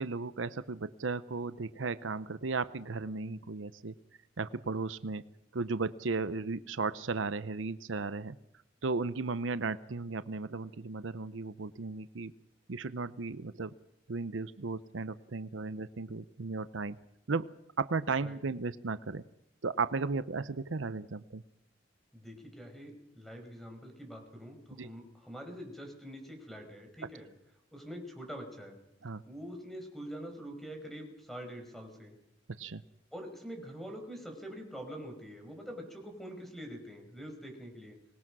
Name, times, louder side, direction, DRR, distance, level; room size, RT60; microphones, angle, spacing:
voice 1, 0.0-3.9 4.4-5.2 5.5-8.4 8.8-12.3 12.7-13.7 14.1-17.0 17.3-17.5 17.8-19.2 19.6-21.4 24.8-24.9 29.0-29.2 32.6-32.8, right 4 dB, 80° right, 14 dB, 0.8 m, -35 dB
voice 2, 22.1-27.3 27.7-28.8 29.2-32.1 33.1-38.0, equal, ahead, 4 dB, 5.2 m, -45 dB
25.0 x 20.5 x 6.2 m, 0.82 s
head